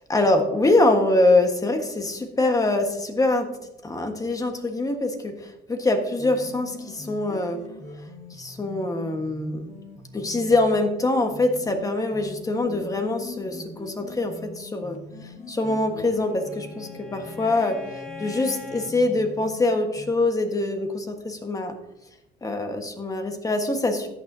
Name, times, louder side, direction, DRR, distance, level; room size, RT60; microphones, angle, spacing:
voice 1, 0.1-3.5 3.8-7.6 8.3-9.6 10.1-21.7 22.4-24.1, left 2 dB, 20° left, 5 dB, 1.4 m, -24 dB
sound 1, 6.2-20.1, left 2 dB, 40° left, 1.9 m, -42 dB
Bowed string instrument, 15.8-19.0, left 4 dB, 5° left, 2.1 m, -41 dB
14.0 x 9.1 x 2.8 m, 0.95 s
cardioid pair, 110°, 17 cm